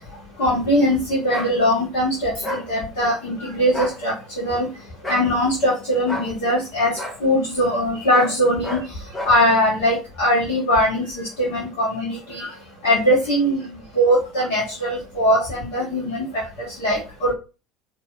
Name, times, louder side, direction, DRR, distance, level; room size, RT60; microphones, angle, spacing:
voice 1, 0.4-4.7 5.1-6.9 7.2-8.8 9.2-12.5 12.8-17.3, equal, 65° left, -4 dB, 1.2 m, -21 dB
sound 1, 1.3-1.5 2.4-2.7 3.7-4.0 5.0-5.3 6.1-6.3 7.0-7.2 8.1-8.4 8.6-8.9 9.1-9.4, left 1 dB, 25° left, 1.7 m, -29 dB
4.1 x 2.9 x 2.4 m, 0.31 s
figure-of-eight pair, 65°, 0 cm